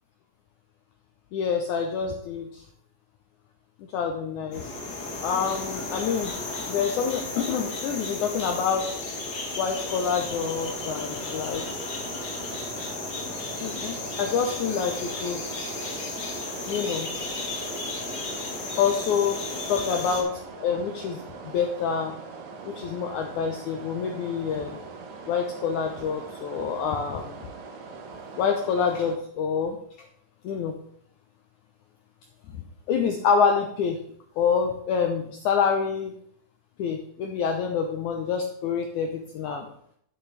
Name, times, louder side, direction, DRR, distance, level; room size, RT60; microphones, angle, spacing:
voice 1, 1.3-2.6 3.9-4.7 5.2-6.3 6.7-8.9 9.5-11.8 13.6-15.6 16.7-17.1 18.8-19.4 19.7-22.1 22.7-24.8 25.3-27.5 28.4-29.8 30.4-30.7 32.5-32.6 32.9-34.0 34.4-36.1 36.8-39.7, left 6 dB, 80° left, 4 dB, 1.8 m, -27 dB
sound 1, 4.5-20.2, left 2 dB, 60° left, 1.0 m, -34 dB
sound 2, 9.7-29.2, right 4 dB, 65° right, 2.0 m, -42 dB
10.0 x 8.6 x 3.3 m, 0.67 s
omnidirectional pair, 4.3 m